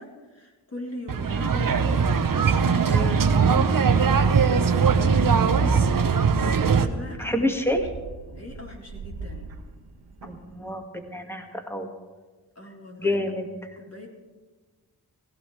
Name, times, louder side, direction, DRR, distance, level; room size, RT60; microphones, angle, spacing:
voice 1, 0.0-3.0 3.4-3.8 4.5-5.8 6.4-7.5 8.3-9.5 12.6-13.2 13.5-14.1, left 1 dB, 40° left, -2 dB, 4.1 m, -40 dB
sound 1, 1.1-6.9, right 5 dB, 55° right, 1.0 m, -20 dB
voice 2, 2.9-3.2 7.2-7.8 10.2-11.9 13.0-13.5, left 1 dB, 5° left, 4 dB, 2.1 m, -28 dB
sound 2, 5.5-10.7, right 3 dB, 80° right, 1.5 m, -40 dB
17.5 x 16.5 x 3.4 m, 1.3 s
cardioid pair, 50°, 41 cm